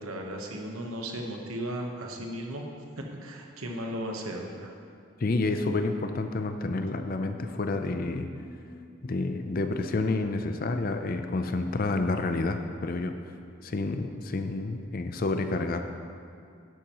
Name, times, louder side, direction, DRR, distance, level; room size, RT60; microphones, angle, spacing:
voice 1, 0.0-2.6 3.0-4.7, right 1 dB, 80° right, 2 dB, 1.1 m, -36 dB
sound 1, 4.9-5.0 5.2-10.9, left 1 dB, 20° left, 1.0 m, -52 dB
voice 2, 5.2-8.3 9.0-13.2 13.6-15.8, left 3 dB, 40° left, 7 dB, 0.5 m, -29 dB
11.0 x 8.5 x 3.0 m, 2.4 s
head